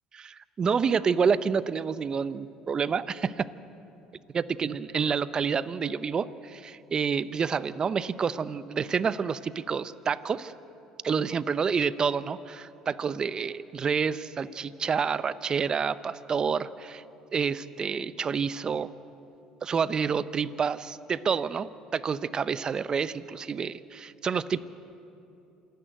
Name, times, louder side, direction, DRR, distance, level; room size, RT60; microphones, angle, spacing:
voice 1, 0.1-3.5 4.3-10.5 11.0-17.0 17.3-18.9 19.6-24.6, right 6 dB, 40° right, 16 dB, 0.7 m, -28 dB
27.0 x 10.5 x 9.1 m, 2.8 s
hypercardioid pair, 70°, 2 cm